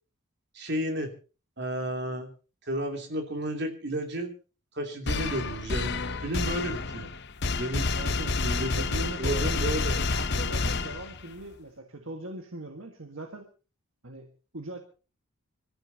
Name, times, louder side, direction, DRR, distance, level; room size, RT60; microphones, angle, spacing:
voice 1, 0.5-1.1 1.6-2.3 2.7-4.3 4.7-6.0 6.2-7.1 7.5-7.9 8.4-8.9 9.2-10.2, right 1 dB, 50° right, 4 dB, 3.0 m, -32 dB
sound 1, 5.1-11.4, left 3 dB, 50° left, 1.0 m, -29 dB
voice 2, 7.9-8.3 8.8-9.6 10.1-13.5 14.0-14.8, right 2 dB, 65° right, 4 dB, 1.7 m, -40 dB
26.0 x 13.5 x 2.9 m, 0.34 s
head